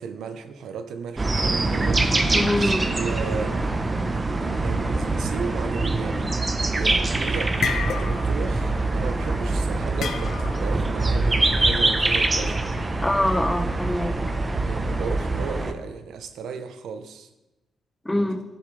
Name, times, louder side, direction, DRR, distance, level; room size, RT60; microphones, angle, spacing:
voice 1, 0.0-3.7 4.4-12.6 14.6-17.3 18.1-18.2, right 6 dB, 80° right, 9 dB, 0.8 m, -35 dB
sound 1, 1.2-15.7, right 2 dB, 30° right, 0.9 m, -24 dB
voice 2, 2.3-2.9 13.0-14.2 18.0-18.4, left 1 dB, 10° left, 8 dB, 0.8 m, -24 dB
sound 2, 6.7-7.0 7.4-8.4 8.7-9.0 10.0-10.7, left 6 dB, 65° left, 0.8 m, -29 dB
11.0 x 7.3 x 3.3 m, 1.0 s
cardioid pair, 75°, 0 cm